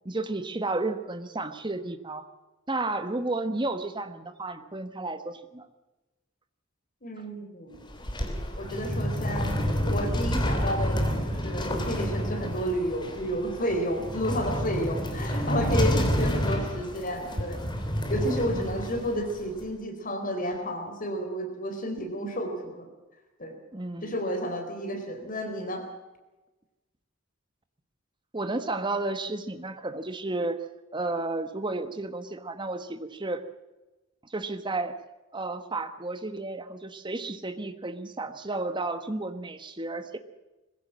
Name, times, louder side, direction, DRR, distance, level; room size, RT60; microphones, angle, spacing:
voice 1, 0.0-2.3 2.7-5.7 15.0-15.1 15.8-16.1 18.5-18.7 23.7-24.1 28.3-30.6 30.9-33.4 34.3-35.0 35.3-40.2, right 2 dB, 25° right, 9 dB, 1.4 m, -32 dB
voice 2, 7.0-7.8 8.6-9.6 9.9-17.6 18.1-22.9 23.4-23.5 24.0-25.8, equal, 45° left, 5 dB, 3.9 m, -31 dB
sound 1, 7.7-19.6, equal, 25° left, 3.3 m, -29 dB
21.5 x 16.5 x 7.5 m, 1.1 s
head